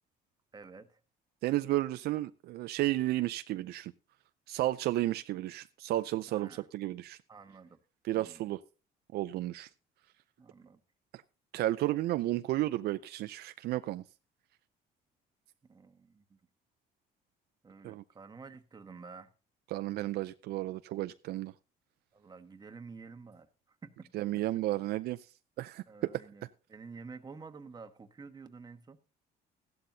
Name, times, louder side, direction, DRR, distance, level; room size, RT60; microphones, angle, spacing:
voice 1, 0.5-1.0 6.3-6.7 7.3-7.8 8.1-8.5 10.4-10.8 15.6-16.4 17.6-19.3 22.1-24.1 24.3-24.4 25.9-26.4 26.7-29.0, right 4 dB, 25° right, 8 dB, 1.2 m, -50 dB
voice 2, 1.4-3.9 4.5-7.2 8.0-8.6 9.1-9.7 11.5-14.0 17.8-18.0 19.7-21.5 24.1-25.2 25.6-25.8, right 16 dB, 70° right, 12 dB, 0.5 m, -32 dB
14.5 x 11.5 x 2.7 m, 0.32 s
cardioid pair, 110°, 17 cm